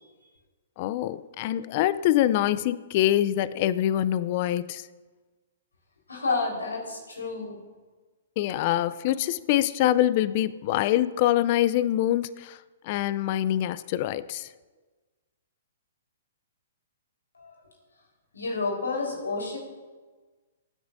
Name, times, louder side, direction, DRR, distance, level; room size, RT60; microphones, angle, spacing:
voice 1, 0.8-4.9 8.4-12.6 12.8-14.5, left 13 dB, 45° left, 16 dB, 0.5 m, -25 dB
voice 2, 6.1-7.6 17.4-17.5 18.3-19.6, left 3 dB, 85° left, -1 dB, 4.3 m, -30 dB
24.0 x 9.9 x 2.7 m, 1.3 s
hypercardioid pair, 125°, 0 cm